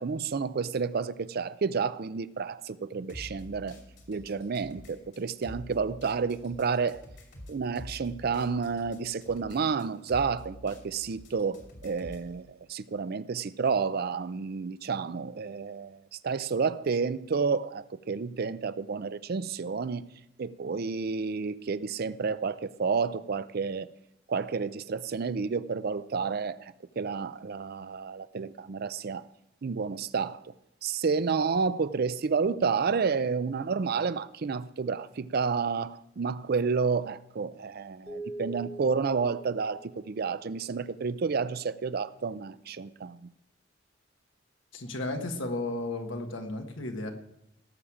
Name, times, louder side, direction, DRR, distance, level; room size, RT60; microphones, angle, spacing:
voice 1, 0.0-3.8 4.1-7.0 7.5-16.0 16.2-20.1 20.4-23.9 24.3-29.3 29.6-30.4 30.8-43.3, right 5 dB, 55° right, 0.5 m, -30 dB
sound 1, 3.1-12.3, equal, 65° left, 2.8 m, -47 dB
sound 2, 38.1-40.6, right 1 dB, 5° left, 0.9 m, -43 dB
voice 2, 44.7-47.1, left 2 dB, 85° left, 1.6 m, -34 dB
17.5 x 7.3 x 4.9 m
head